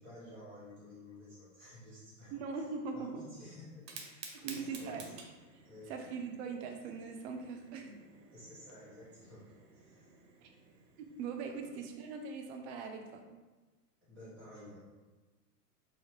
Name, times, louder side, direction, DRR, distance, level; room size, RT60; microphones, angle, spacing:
voice 1, 0.0-2.6 2.9-5.1 5.6-5.9 8.3-10.1 11.6-11.7 14.0-14.8, left 1 dB, 5° left, -14 dB, 0.4 m, -53 dB
voice 2, 2.3-3.2 4.3-5.0 5.9-8.0 10.4-10.5 11.0-13.2, right 5 dB, 40° right, 4 dB, 0.6 m, -41 dB
Fire, 3.7-12.6, right 4 dB, 75° right, 1.0 m, -53 dB
4.9 x 2.8 x 2.9 m, 1.2 s
hypercardioid pair, 130°, 50 cm